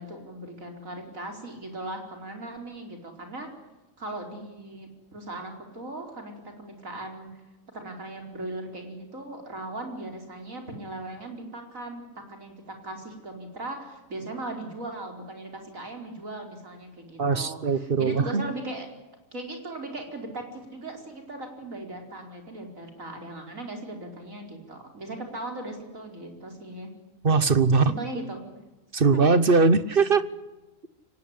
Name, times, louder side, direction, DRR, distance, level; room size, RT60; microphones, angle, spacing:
voice 1, 0.0-3.5 4.0-7.4 7.7-18.9 19.3-26.9 27.8-28.4 29.0-29.2, right 2 dB, 85° right, 3 dB, 5.1 m, -38 dB
voice 2, 17.2-18.5 27.2-27.9 28.9-30.2, right 4 dB, 45° right, 14 dB, 1.2 m, -21 dB
24.5 x 19.0 x 9.9 m, 1.1 s
omnidirectional pair, 1.4 m